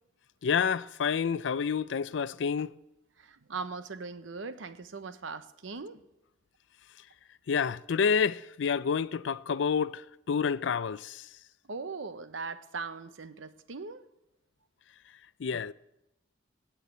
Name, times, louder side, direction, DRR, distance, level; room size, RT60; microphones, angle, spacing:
voice 1, 0.4-2.7 7.5-10.0 10.3-11.3 15.4-15.7, left 6 dB, 75° left, 0.4 m, -28 dB
voice 2, 3.2-6.0 11.6-14.1, right 4 dB, 85° right, 0.8 m, -40 dB
16.5 x 5.9 x 8.3 m
head